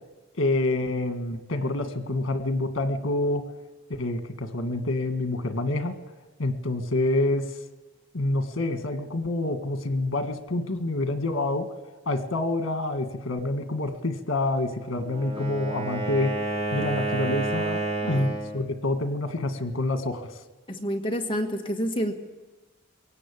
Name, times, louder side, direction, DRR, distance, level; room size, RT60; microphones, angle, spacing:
voice 1, 0.3-3.4 3.9-6.0 6.4-7.5 8.1-11.7 12.0-16.3 16.7-17.8 18.1-20.3, left 2 dB, 90° left, 7 dB, 1.7 m, -27 dB
Wind instrument woodwind instrument, 15.0-18.6, right 2 dB, 30° right, 4.7 m, -29 dB
voice 2, 20.7-22.1, equal, 25° left, 2 dB, 1.9 m, -28 dB
21.5 x 17.5 x 8.6 m, 1.2 s
head